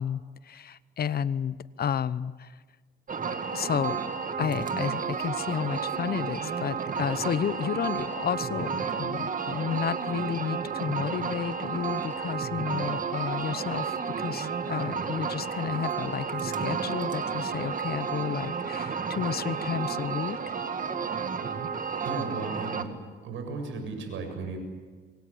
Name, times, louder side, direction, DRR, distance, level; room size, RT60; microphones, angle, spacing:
voice 1, 0.0-2.5 3.2-4.0 4.4-20.4, left 8 dB, 50° left, 16 dB, 0.9 m, -32 dB
sound 1, 3.1-22.8, right 6 dB, 40° right, 2.2 m, -32 dB
voice 2, 22.0-22.9 23.2-24.6, right 3 dB, 80° right, 5 dB, 7.7 m, -35 dB
26.5 x 23.0 x 8.7 m, 1.5 s
cardioid pair, 90°, 20 cm